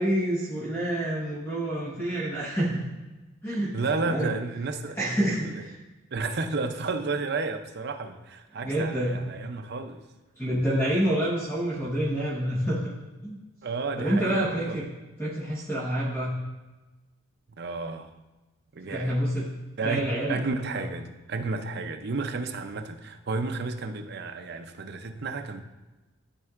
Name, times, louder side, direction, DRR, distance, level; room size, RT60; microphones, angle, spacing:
voice 1, 0.0-2.8 3.4-3.7 4.1-4.3 5.0-5.8 8.6-9.2 10.4-12.9 13.2-13.4 14.0-14.9 15.2-16.4 18.9-19.5 19.8-20.4 20.7-20.8, right 1 dB, 10° left, -7 dB, 1.2 m, -27 dB
voice 2, 3.7-5.0 5.2-5.5 6.1-10.0 13.6-14.8 17.5-18.1 18.7-19.2 19.8-20.0 20.3-25.6, right 3 dB, 55° right, 7 dB, 0.6 m, -32 dB
12.5 x 4.4 x 2.5 m, 1.1 s
head